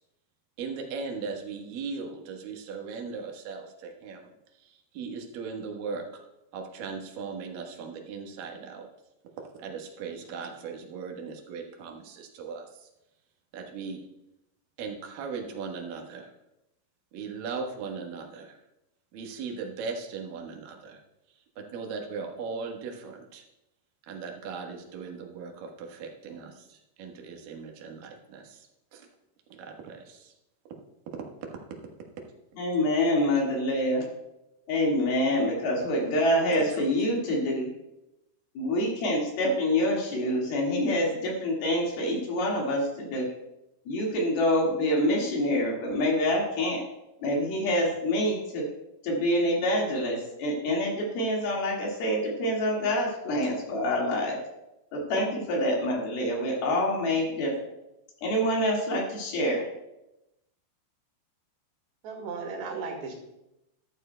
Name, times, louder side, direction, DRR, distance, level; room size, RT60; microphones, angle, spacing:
voice 1, 0.6-6.2 6.5-8.9 9.6-12.9 13.5-14.0 14.8-16.3 17.1-18.6 19.1-21.0 21.6-23.4 24.1-29.1 29.6-30.3, right 5 dB, 65° right, 2 dB, 2.8 m, -38 dB
voice 2, 32.6-34.1 34.7-37.7 38.6-43.3 43.9-46.8 47.2-48.7 49.0-54.4 54.9-57.5 58.2-59.6, left 1 dB, 70° left, -2 dB, 3.8 m, -26 dB
voice 3, 62.0-63.1, right 4 dB, 85° right, 1 dB, 4.0 m, -35 dB
13.5 x 12.5 x 2.2 m, 0.89 s
omnidirectional pair, 4.7 m